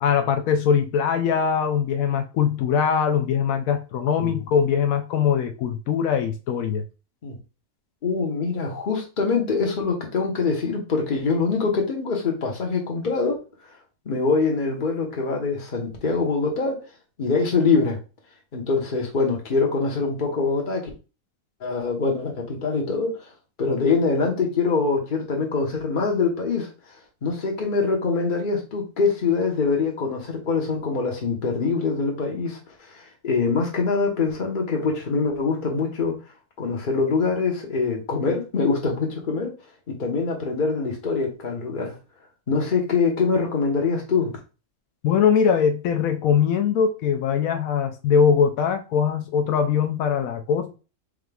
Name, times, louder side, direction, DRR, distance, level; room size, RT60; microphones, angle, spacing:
voice 1, 0.0-6.8 45.0-50.8, left 7 dB, 85° left, 1.0 m, -21 dB
voice 2, 8.0-13.4 14.0-16.8 17.2-18.0 18.5-20.9 21.6-23.3 23.6-26.7 27.2-36.2 36.6-39.6 39.9-42.0 42.5-44.4, left 4 dB, 40° left, 1.2 m, -24 dB
4.8 x 3.6 x 2.3 m
omnidirectional pair, 1.4 m